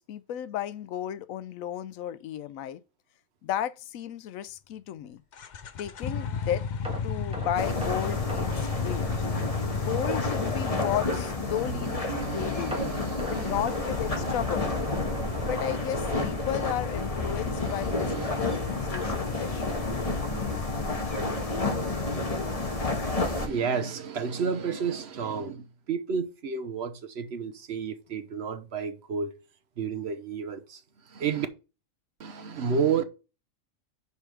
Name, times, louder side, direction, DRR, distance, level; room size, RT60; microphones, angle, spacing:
voice 1, 0.0-2.8 3.4-5.2 5.8-6.7 7.0-9.3 9.8-12.0 12.3-12.8 13.3-15.0 15.4-19.8, left 11 dB, 80° left, 1.0 m, -34 dB
sound 1, 5.3-11.7 13.5-23.6, left 5 dB, 50° left, 0.5 m, -35 dB
sound 2, 6.8-9.9 10.2-10.4 10.8-10.9 12.7-17.6 17.9-18.1 18.5-18.6, equal, 5° right, 1.6 m, -40 dB
sound 3, 7.6-23.5, left 2 dB, 25° left, 1.4 m, -30 dB
voice 2, 11.6-13.6 17.7-18.3 23.2-29.3 29.8-30.8 31.1-31.5 32.2-33.0, right 6 dB, 55° right, 1.0 m, -31 dB
5.5 x 4.9 x 6.1 m
omnidirectional pair, 1.4 m